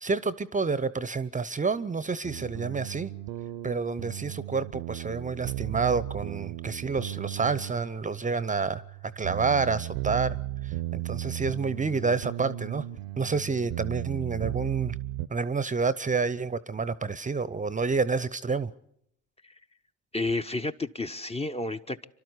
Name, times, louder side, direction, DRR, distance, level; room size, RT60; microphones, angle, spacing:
voice 1, 0.0-3.1 3.6-8.8 9.2-10.4 10.6-12.8 13.2-15.0 15.3-18.7, right 4 dB, 20° right, 0.8 m, -29 dB
sound 1, 2.2-15.3, right 15 dB, 65° right, 0.8 m, -36 dB
voice 2, 20.1-22.1, left 2 dB, 15° left, 0.8 m, -31 dB
27.5 x 12.0 x 8.2 m
hypercardioid pair, 55°, 37 cm